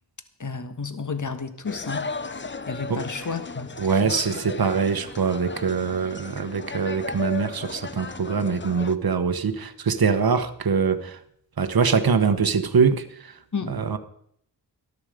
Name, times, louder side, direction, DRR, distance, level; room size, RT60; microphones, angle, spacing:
voice 1, 0.4-2.1 2.7-3.7 4.0-4.4 13.5-13.7, left 5 dB, 45° left, 1.6 m, -31 dB
sound 1, 1.7-9.0, left 3 dB, 25° left, 0.8 m, -35 dB
voice 2, 3.8-11.2 11.6-13.3 13.7-14.0, right 5 dB, 55° right, 1.2 m, -23 dB
13.5 x 12.5 x 5.1 m
cardioid pair, 50°, 43 cm